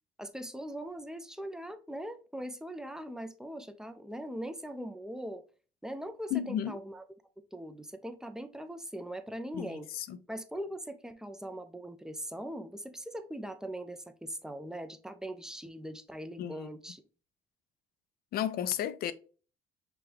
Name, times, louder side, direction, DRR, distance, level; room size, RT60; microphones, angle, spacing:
voice 1, 0.2-5.4 5.8-7.0 7.5-9.9 10.3-17.0, right 1 dB, 5° right, 0.4 m, -41 dB
voice 2, 6.3-6.8 9.5-10.2 16.4-16.7 18.3-19.1, left 10 dB, 65° left, 0.5 m, -33 dB
5.9 x 2.3 x 3.1 m
cardioid pair, 110°, 17 cm